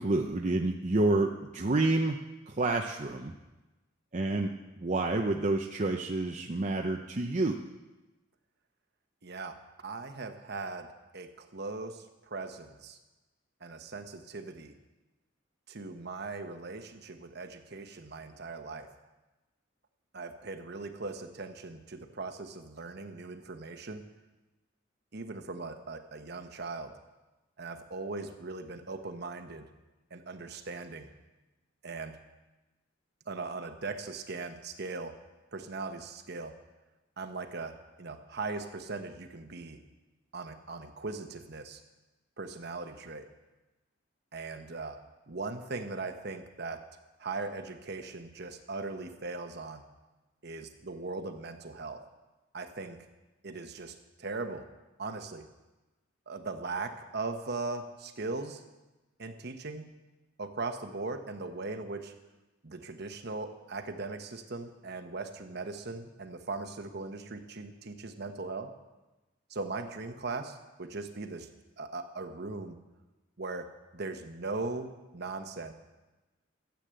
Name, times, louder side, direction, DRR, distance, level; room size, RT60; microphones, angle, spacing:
voice 1, 0.0-2.2 2.5-3.3 4.1-4.5 4.8-7.6, right 2 dB, 40° right, 2 dB, 0.7 m, -28 dB
voice 2, 9.2-10.9 11.1-13.0 13.6-14.7 15.7-18.9 20.1-24.1 25.1-26.9 27.6-29.7 30.1-31.1 31.8-32.2 33.3-35.2 35.5-36.6 37.2-39.8 40.3-41.8 42.4-43.3 44.3-45.0 45.3-46.8 47.2-49.8 50.4-52.0 52.5-53.0 53.4-54.7 55.0-55.5 56.3-58.6 59.2-59.9 60.4-62.1 62.6-68.7 69.5-71.5 71.8-72.8 73.4-75.7, right 3 dB, 55° right, 7 dB, 1.1 m, -39 dB
13.5 x 8.5 x 7.7 m, 1.1 s
head